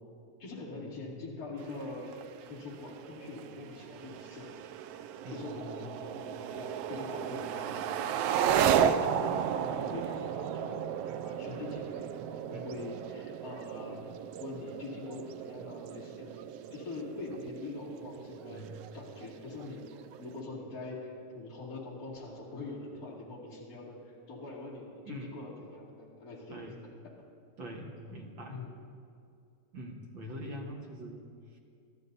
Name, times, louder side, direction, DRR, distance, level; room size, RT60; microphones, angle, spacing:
voice 1, 0.4-2.1 2.5-4.5 5.3-8.1 8.5-14.1 14.4-18.6 18.9-19.9 20.2-26.9 28.5-28.7, left 2 dB, 30° left, -5 dB, 2.8 m, -43 dB
sound 1, 1.6-20.4, right 9 dB, 90° right, 1.3 m, -34 dB
voice 2, 5.2-5.7 12.5-12.7 18.5-18.8 25.0-25.3 26.5-26.8 27.6-28.6 29.7-31.2 31.5-31.6, equal, 50° right, 0 dB, 1.7 m, -44 dB
25.0 x 12.5 x 2.8 m, 2.4 s
omnidirectional pair, 3.3 m